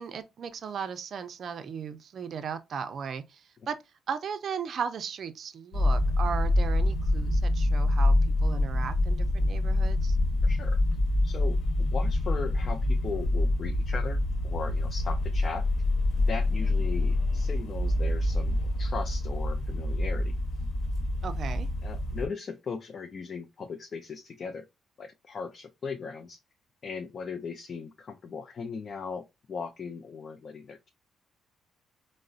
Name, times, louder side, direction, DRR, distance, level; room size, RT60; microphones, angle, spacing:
voice 1, 0.0-3.8 4.1-10.2 21.2-21.7, right 6 dB, 55° right, 0.4 m, -36 dB
sound 1, 5.7-22.3, left 1 dB, 70° left, 1.0 m, -26 dB
voice 2, 10.4-10.8 11.2-15.7 16.2-20.3 21.8-24.7 25.0-26.4 26.8-30.9, left 5 dB, 45° left, 0.4 m, -38 dB
3.7 x 2.0 x 2.4 m
cardioid pair, 90°, 0 cm